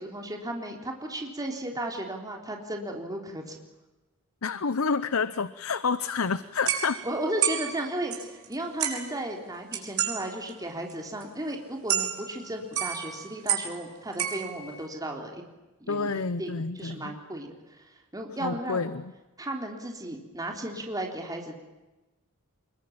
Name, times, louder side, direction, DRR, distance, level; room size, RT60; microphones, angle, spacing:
voice 1, 0.0-3.6 7.0-8.2 8.5-15.4 15.8-16.1 16.4-17.8 18.1-18.9 19.4-21.6, right 1 dB, 15° right, 2 dB, 3.6 m, -34 dB
voice 2, 4.4-7.0 15.9-17.1 18.4-19.1, left 5 dB, 85° left, 14 dB, 0.8 m, -29 dB
sound 1, 6.0-6.2 6.7-8.5 8.8-9.2 9.7-10.2 10.5-10.6 10.9-11.0 11.2-11.3 11.9-12.5 12.7-13.8 14.1-14.8, right 9 dB, 90° right, 5.5 m, -30 dB
25.0 x 22.5 x 8.8 m, 1.1 s
head